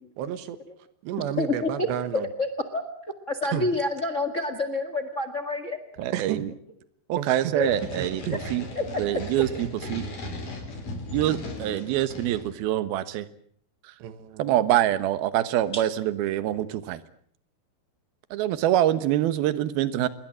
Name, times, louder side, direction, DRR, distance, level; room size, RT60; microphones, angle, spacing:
voice 1, 0.2-0.6 1.0-2.3 3.5-3.7 6.1-6.5 7.2-7.6 8.0-8.4 9.6-9.7 14.0-14.5, right 11 dB, 85° right, 12 dB, 3.7 m, -31 dB
voice 2, 1.4-1.9 2.4-2.8 3.3-5.8 7.5-8.0 8.7-8.8 9.9-10.0 11.7-11.8 15.7-15.8, left 2 dB, 65° left, 10 dB, 0.7 m, -28 dB
voice 3, 6.0-6.5 7.1-8.7 9.0-10.1 11.1-13.3 13.8-13.9 14.4-17.0 18.3-20.1, right 12 dB, 70° right, 14 dB, 2.9 m, -25 dB
sound 1, 7.6-12.6, left 2 dB, 50° left, 6.1 m, -37 dB
27.5 x 21.5 x 7.6 m, 0.62 s
omnidirectional pair, 4.9 m